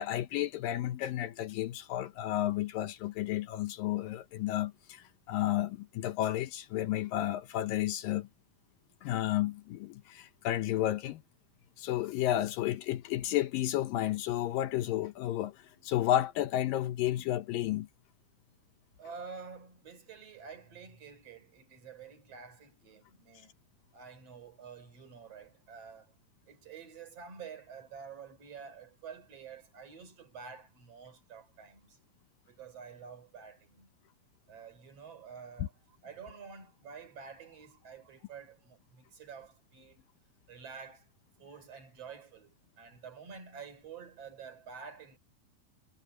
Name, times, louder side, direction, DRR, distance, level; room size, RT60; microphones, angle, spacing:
voice 1, 0.0-8.3 9.0-11.2 11.8-17.9 35.6-35.7, left 13 dB, 75° left, 2.5 m, -32 dB
voice 2, 19.0-23.5 23.9-26.1 26.5-32.0 32.4-33.9 34.5-40.0 40.5-41.1 41.4-45.2, right 6 dB, 45° right, 4.8 m, -49 dB
omnidirectional pair, 4.2 m